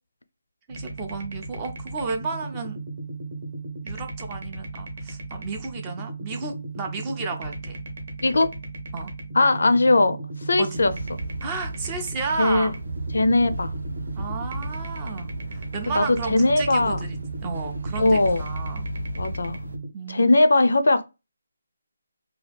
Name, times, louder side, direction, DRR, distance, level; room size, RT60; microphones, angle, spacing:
voice 1, 0.7-2.8 3.8-7.8 8.9-9.1 10.6-10.9 11.4-12.8 14.2-17.2 17.4-18.9 19.9-20.4, right 4 dB, 15° right, 0.3 m, -33 dB
sound 1, 0.7-19.9, right 3 dB, 40° right, 0.8 m, -36 dB
voice 2, 9.3-10.2 10.5-10.9 12.4-12.7 13.1-13.7 16.0-17.0 18.0-18.5 19.2-19.6 20.1-21.0, left 2 dB, 70° left, 0.4 m, -19 dB
sound 2, 10.7-19.8, right 1 dB, 80° right, 0.6 m, -35 dB
2.7 x 2.2 x 3.3 m
hypercardioid pair, 180°, 0 cm